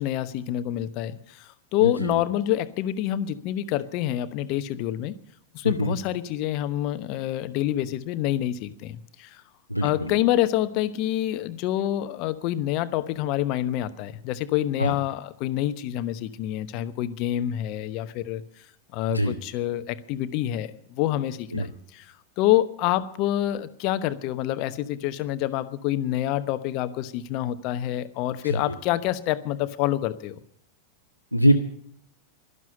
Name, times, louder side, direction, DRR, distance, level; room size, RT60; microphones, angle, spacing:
voice 1, 0.0-5.2 5.5-9.4 9.8-18.4 18.9-30.4, left 13 dB, 40° left, 13 dB, 1.0 m, -27 dB
voice 2, 1.8-2.2 5.6-6.0 9.7-10.1 14.8-14.9 19.1-19.4 21.5-21.7 28.4-28.8 31.3-31.5, equal, 90° left, 3 dB, 0.9 m, -23 dB
12.5 x 12.0 x 8.6 m, 0.69 s
figure-of-eight pair, 90°, 0 cm